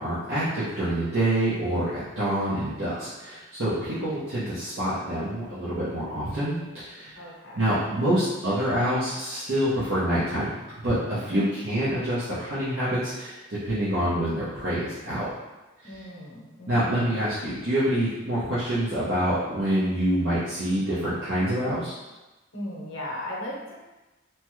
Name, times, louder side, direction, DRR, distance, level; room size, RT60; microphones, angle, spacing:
voice 1, 0.0-7.3 7.6-10.5 10.8-15.3 15.9-16.0 16.7-21.9, right 1 dB, 70° right, -12 dB, 0.8 m, -26 dB
voice 2, 7.2-7.9 15.8-17.1 22.5-23.8, left 1 dB, 70° left, -3 dB, 0.7 m, -37 dB
2.9 x 2.3 x 3.1 m, 1.1 s
head